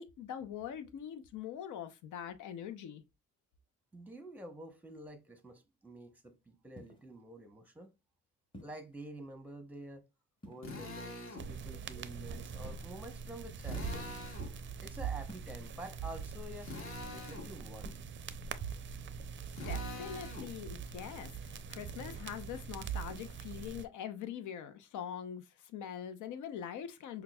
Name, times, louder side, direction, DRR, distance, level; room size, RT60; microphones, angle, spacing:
voice 1, 0.0-3.0 19.7-27.2, left 9 dB, 75° left, 0.7 m, -43 dB
voice 2, 3.9-7.9 8.6-10.0 10.5-14.1 14.8-16.7 17.1-18.0, right 1 dB, 5° right, 0.8 m, -48 dB
sound 1, 6.8-7.2 8.5-9.0 10.4-11.0 12.6-13.4 15.2-15.8 17.8-18.1 20.4-20.9 23.1-23.5, equal, 15° left, 1.2 m, -55 dB
Drill, 10.6-11.5 13.6-14.5 16.6-17.5 19.5-20.5, left 3 dB, 45° left, 1.3 m, -44 dB
sound 2, 11.4-23.8, right 6 dB, 40° right, 0.5 m, -43 dB
5.8 x 2.3 x 2.2 m
cardioid pair, 90°, 30 cm